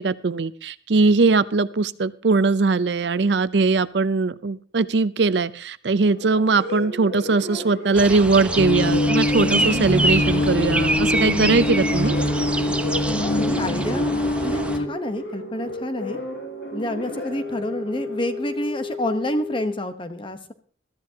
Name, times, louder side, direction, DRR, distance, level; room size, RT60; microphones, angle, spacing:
voice 1, 0.0-12.2, right 3 dB, 75° right, 16 dB, 0.6 m, -20 dB
sound 1, 6.0-19.7, equal, 70° left, 6.7 m, -33 dB
sound 2, 7.9-14.8, right 2 dB, 5° right, 0.7 m, -26 dB
sound 3, 8.6-14.9, left 1 dB, 85° left, 1.5 m, -23 dB
voice 2, 13.2-14.1 14.4-16.2 16.7-20.5, left 1 dB, 30° left, 9 dB, 1.0 m, -28 dB
21.5 x 13.5 x 2.8 m, 0.43 s
head